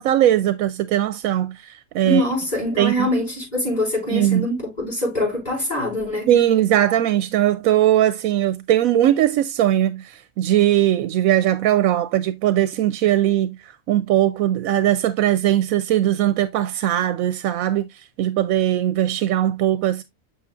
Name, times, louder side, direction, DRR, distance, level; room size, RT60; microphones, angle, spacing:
voice 1, 0.0-2.2 2.8-3.1 4.1-4.5 6.3-13.6 13.9-17.9 18.2-20.0, right 12 dB, 85° right, 1.0 m, -19 dB
voice 2, 2.0-6.3, left 1 dB, 30° left, 5.5 m, -24 dB
7.2 x 6.3 x 2.4 m
omnidirectional pair, 1.4 m